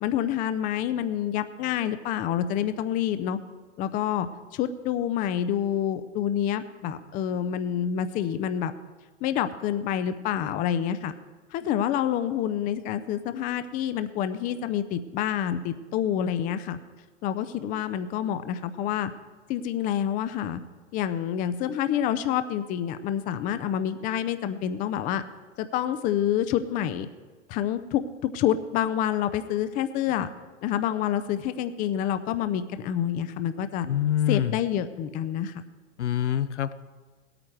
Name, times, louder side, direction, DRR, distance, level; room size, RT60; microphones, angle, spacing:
voice 1, 0.0-3.4 3.8-8.7 9.2-11.1 11.5-16.8 17.2-19.1 19.5-20.6 20.9-25.2 25.6-27.1 27.5-30.3 30.6-33.9 34.3-35.6, left 10 dB, 25° left, 11 dB, 0.5 m, -27 dB
voice 2, 33.9-34.6 36.0-36.7, left 10 dB, 75° left, 13 dB, 0.7 m, -25 dB
17.5 x 8.9 x 4.5 m, 1.4 s
hypercardioid pair, 105°, 36 cm